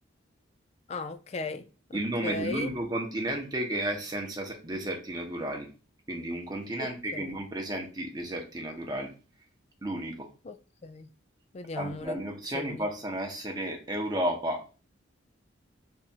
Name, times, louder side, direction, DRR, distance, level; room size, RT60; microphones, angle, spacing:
voice 1, 0.9-2.7 6.8-7.4 10.4-10.6 10.8-11.1 11.5-12.2 12.5-12.9, left 3 dB, 30° left, 0.3 m, -37 dB
voice 2, 1.9-5.7 6.1-9.1 9.8-10.3 11.8-14.6, right 1 dB, 20° right, 0.8 m, -33 dB
3.6 x 2.5 x 4.2 m
head